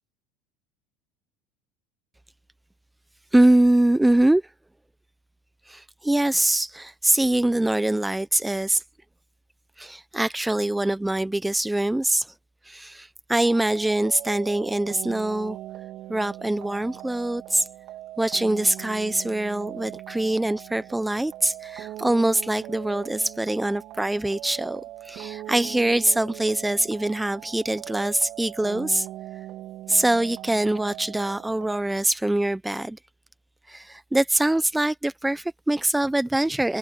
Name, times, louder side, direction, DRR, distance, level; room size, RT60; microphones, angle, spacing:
voice 1, 3.3-4.4 5.7-8.8 9.8-12.3 12.6-15.6 16.1-17.7 18.2-29.1 29.9-33.0 33.7-36.8, right 1 dB, 5° right, 0.7 m, -23 dB
sound 1, 13.3-31.8, right 14 dB, 55° right, 2.8 m, -40 dB
supercardioid pair, 105°, 0 cm